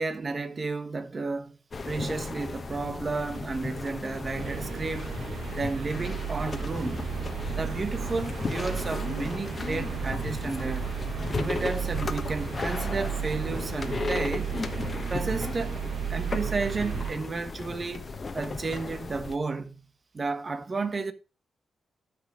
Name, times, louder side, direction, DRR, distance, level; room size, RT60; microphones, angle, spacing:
voice 1, 0.0-1.6 1.9-5.1 5.5-7.0 7.6-10.9 11.3-14.5 15.1-15.8 16.1-18.1 18.3-19.8 20.1-21.1, right 3 dB, 35° right, 1.3 m, -32 dB
Concert Hall Silence Ambiance, 1.7-19.4, left 4 dB, 35° left, 1.2 m, -35 dB
sound 1, 4.4-17.1, right 9 dB, 75° right, 1.2 m, -34 dB
12.0 x 6.2 x 5.1 m
cardioid pair, 110°, 0 cm